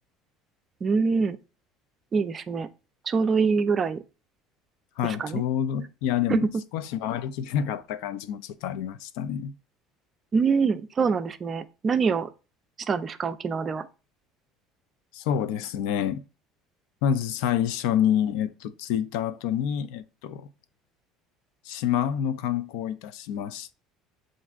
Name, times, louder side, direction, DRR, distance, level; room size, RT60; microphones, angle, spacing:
voice 1, 0.8-1.4 2.1-2.7 3.1-4.0 5.0-5.4 6.3-6.4 10.3-12.3 12.9-13.9, right 5 dB, 30° right, 0.4 m, -25 dB
voice 2, 5.0-9.5 15.1-16.2 17.0-20.5 21.7-23.7, left 9 dB, 80° left, 0.4 m, -28 dB
7.0 x 2.5 x 2.4 m
cardioid pair, 125°, 0 cm